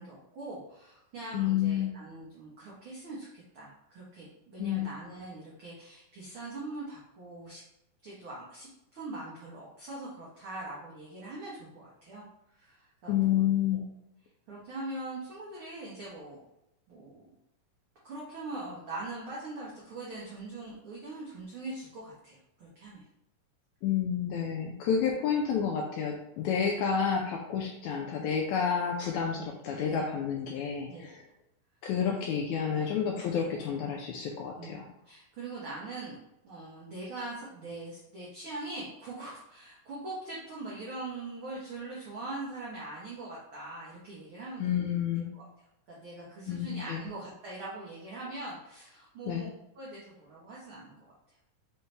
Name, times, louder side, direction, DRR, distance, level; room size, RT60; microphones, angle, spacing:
voice 1, 0.0-7.6 8.0-12.2 12.5-13.4 13.7-13.8 14.5-16.4 16.9-17.3 18.0-23.0 29.9-30.0 30.9-31.1 32.0-32.2 32.7-32.9 34.5-36.2 36.4-45.0 45.3-45.5 45.9-51.1, right 2 dB, 85° right, -6 dB, 1.1 m, -42 dB
voice 2, 1.3-1.9 4.6-4.9 13.1-13.8 23.8-31.2 31.8-34.9 44.6-45.3 46.5-47.0 49.3-49.4, left 8 dB, 80° left, 1 dB, 1.7 m, -30 dB
5.5 x 2.6 x 3.3 m, 0.83 s
omnidirectional pair, 3.8 m